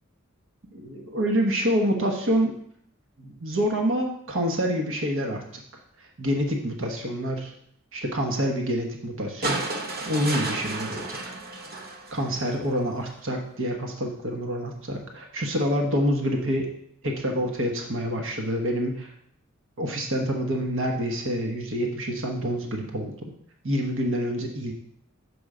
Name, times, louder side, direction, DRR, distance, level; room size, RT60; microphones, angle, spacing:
voice 1, 0.7-2.5 3.2-5.4 6.2-7.5 7.9-9.6 10.1-11.4 12.1-16.7 17.0-19.1 19.8-23.3 23.6-24.7, equal, 65° right, 2 dB, 1.1 m, -27 dB
sound 1, 9.4-12.7 14.1-14.2, right 2 dB, 45° right, 0.8 m, -32 dB
6.6 x 4.8 x 4.9 m, 0.68 s
head